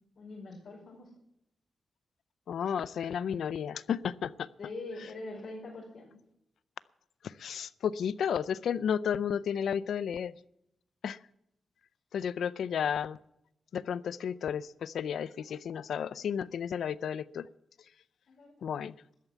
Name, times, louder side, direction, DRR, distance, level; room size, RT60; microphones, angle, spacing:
voice 1, 0.2-1.1 4.6-6.1 18.3-18.5, left 2 dB, 60° left, -6 dB, 5.3 m, -43 dB
voice 2, 2.5-4.5 7.2-10.3 11.0-11.2 12.1-13.2 13.7-17.5 18.6-18.9, left 8 dB, 85° left, 18 dB, 0.5 m, -32 dB
13.0 x 9.1 x 9.2 m, 0.79 s
wide cardioid pair, 155°, 0 cm